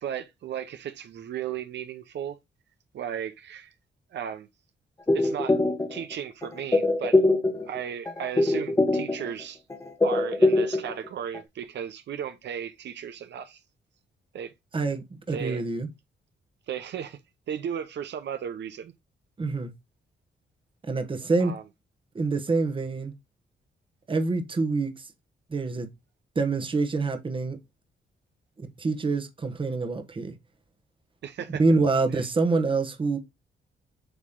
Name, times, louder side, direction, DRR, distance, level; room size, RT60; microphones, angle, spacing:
voice 1, 0.0-2.4 2.9-3.7 4.1-4.5 5.1-5.6 5.9-7.2 7.7-9.6 10.0-13.6 14.3-14.5 15.3-15.6 16.7-17.2 17.5-18.9 21.4-21.6 31.2-31.6 32.1-32.2, right 9 dB, 70° right, 0.7 m, -35 dB
sound 1, 5.1-6.1 6.4-7.8 8.1-9.4 9.7-11.1 11.3-11.4, left 2 dB, 15° left, 1.2 m, -23 dB
voice 2, 14.7-15.9 19.4-19.7 20.8-21.5 22.1-23.1 24.1-25.1 25.5-25.9 26.3-27.6 28.6-30.3 31.5-33.2, right 3 dB, 30° right, 1.1 m, -26 dB
8.1 x 3.1 x 3.6 m
cardioid pair, 125°, 18 cm